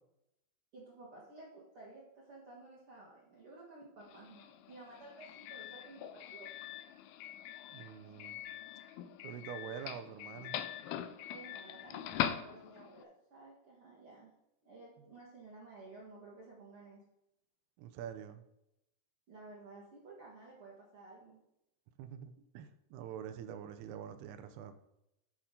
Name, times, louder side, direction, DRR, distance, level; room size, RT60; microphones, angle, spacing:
voice 1, 0.7-6.5 11.3-14.3 14.6-17.0 19.3-21.4, right 3 dB, 55° right, -5 dB, 1.5 m, -54 dB
Doorbell, 4.0-13.0, left 11 dB, 80° left, 2.4 m, -42 dB
voice 2, 7.7-8.4 9.2-10.6 17.8-18.4 22.0-24.7, right 9 dB, 80° right, 9 dB, 2.5 m, -46 dB
12.5 x 5.9 x 3.8 m, 0.84 s
omnidirectional pair, 4.9 m